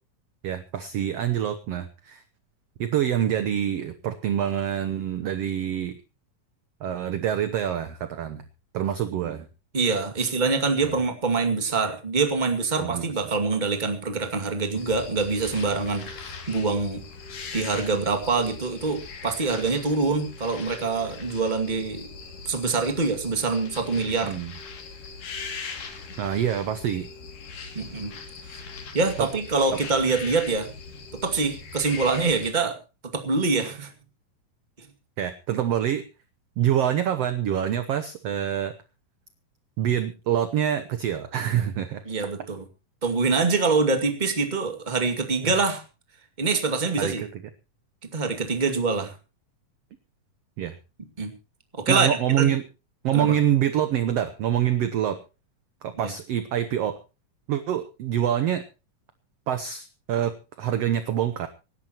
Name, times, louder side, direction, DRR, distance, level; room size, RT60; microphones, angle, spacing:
voice 1, 0.4-2.2 2.8-6.0 6.8-8.4 8.7-9.5 10.2-10.3 10.8-10.9 12.8-13.1 24.2-24.5 26.2-27.1 29.2-29.3 35.2-36.0 36.6-38.7 39.8-42.0 45.4-45.5 47.0-47.3 50.6-50.8 51.9-52.6 53.0-55.2 55.8-57.0 57.5-58.6 59.5-61.5, right 10 dB, 70° right, 10 dB, 1.6 m, -26 dB
voice 2, 9.7-17.0 17.5-22.1 22.5-24.4 27.7-28.1 28.5-28.6 28.9-30.7 31.1-32.8 33.1-33.9 42.1-42.6 43.0-45.8 46.4-47.2 48.1-49.1 51.2-51.3 51.7-52.5 53.1-53.4 56.0-56.1, right 4 dB, 15° right, 5 dB, 1.7 m, -25 dB
sound 1, 14.7-32.5, left 5 dB, 75° left, 4.2 m, -40 dB
25.5 x 11.5 x 3.0 m, 0.31 s
omnidirectional pair, 3.8 m